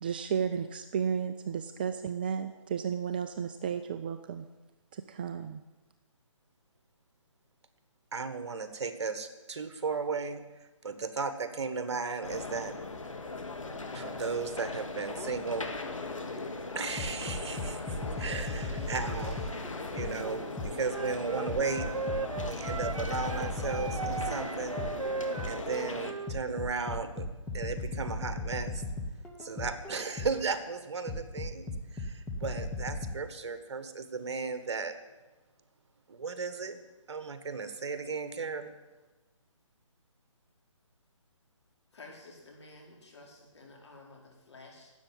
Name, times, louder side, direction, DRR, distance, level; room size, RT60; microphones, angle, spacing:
voice 1, 0.0-4.4 4.9-5.6, right 7 dB, 20° right, 9 dB, 0.3 m, -33 dB
voice 2, 8.1-10.4 10.8-12.7 13.9-15.7 16.7-21.9 22.4-24.8 25.5-27.3 27.5-28.8 29.4-34.9 36.1-36.8 37.1-38.7, right 4 dB, 60° right, 10 dB, 1.6 m, -35 dB
sound 1, 12.2-26.1, left 3 dB, 85° left, 2.0 m, -39 dB
sound 2, 17.0-20.9 21.5-25.7 26.3-30.5 31.1-33.1, left 2 dB, 5° left, 1.0 m, -37 dB
Wind instrument woodwind instrument, 20.9-26.4, right 5 dB, 85° right, 0.5 m, -37 dB
voice 3, 41.9-44.9, left 2 dB, 60° left, 0 dB, 4.8 m, -52 dB
12.5 x 8.2 x 9.6 m, 1.2 s
figure-of-eight pair, 150°, 16 cm